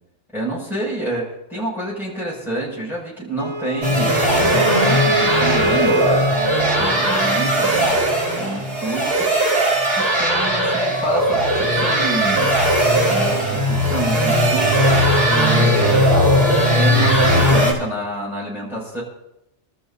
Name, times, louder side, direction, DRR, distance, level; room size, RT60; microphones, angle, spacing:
voice 1, 0.3-6.2 6.8-8.1 8.4-9.3 10.0-12.5 13.1-14.7 15.3-16.1 16.7-19.0, right 1 dB, ahead, -7 dB, 6.9 m, -28 dB
Wind instrument woodwind instrument, 3.4-6.6, equal, 70° left, 1.9 m, -24 dB
sound 1, 3.8-17.7, equal, 50° right, 3.0 m, -18 dB
27.0 x 13.5 x 2.9 m, 0.87 s
omnidirectional pair, 1.3 m